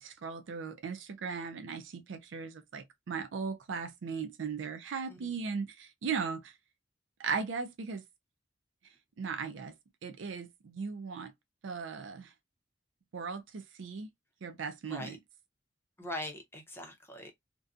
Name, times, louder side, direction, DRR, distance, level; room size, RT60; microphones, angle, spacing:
voice 1, 0.0-6.5 7.2-8.0 9.2-9.7 10.0-11.3 11.6-12.3 13.1-14.1 14.4-15.2, right 5 dB, 85° right, 0.4 m, -37 dB
voice 2, 16.0-17.3, left 1 dB, 15° left, 0.7 m, -41 dB
2.6 x 2.2 x 2.4 m
head